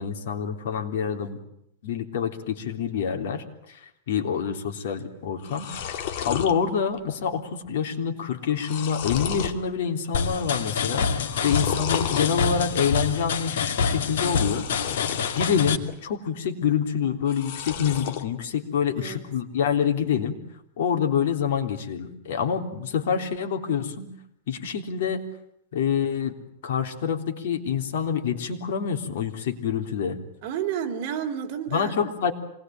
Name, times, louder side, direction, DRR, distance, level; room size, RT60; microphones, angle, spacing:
voice 1, 0.0-1.4 1.8-5.9 6.2-15.0 15.4-20.4 20.8-24.1 24.5-25.3 25.7-26.3 26.6-30.2 31.7-32.3, left 7 dB, 70° left, 5 dB, 3.5 m, -27 dB
sound 1, 5.0-5.1 5.3-6.5 7.0-7.4 7.6-7.7 8.3-9.6 10.0-10.5 11.2-12.3 14.1-15.5 15.9-16.5 17.2-18.3, left 9 dB, 50° left, 2.3 m, -32 dB
sound 2, 10.1-15.8, left 6 dB, 90° left, 2.6 m, -27 dB
voice 2, 11.4-11.7 18.9-19.2 30.4-32.1, right 8 dB, 40° right, 3 dB, 3.3 m, -31 dB
27.0 x 20.0 x 9.1 m, 0.77 s
supercardioid pair, 165°, 0 cm